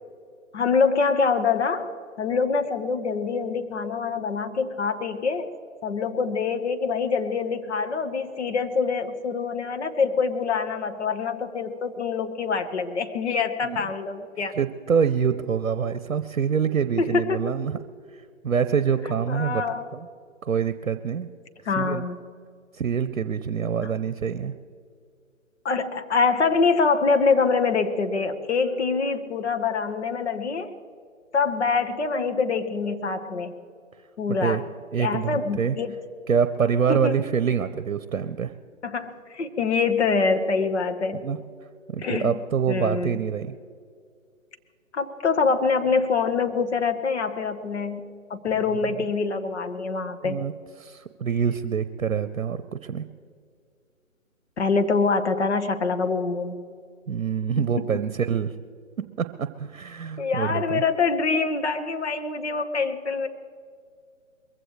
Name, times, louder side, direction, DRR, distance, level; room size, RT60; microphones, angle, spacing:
voice 1, 0.5-1.9 2.2-5.5 5.8-14.6 17.0-17.5 19.0-19.9 21.6-22.2 23.8-23.9 25.6-30.7 31.3-33.5 34.2-34.6 35.0-36.0 36.9-37.2 38.8-41.2 42.0-42.4 42.7-43.2 44.9-50.4 54.6-56.6 57.6-57.7 60.2-63.3, left 4 dB, 55° left, 6 dB, 1.5 m, -25 dB
voice 2, 14.5-17.8 18.1-19.6 19.9-20.1 20.4-21.3 21.8-22.0 22.7-24.5 34.3-34.6 34.9-35.8 36.3-38.5 41.2-41.4 41.9-43.5 48.8-49.1 50.2-50.5 50.8-53.1 57.1-58.6 59.0-60.8, right 7 dB, 70° right, 11 dB, 0.8 m, -26 dB
22.0 x 15.5 x 3.2 m, 2.2 s
figure-of-eight pair, 145°, 40 cm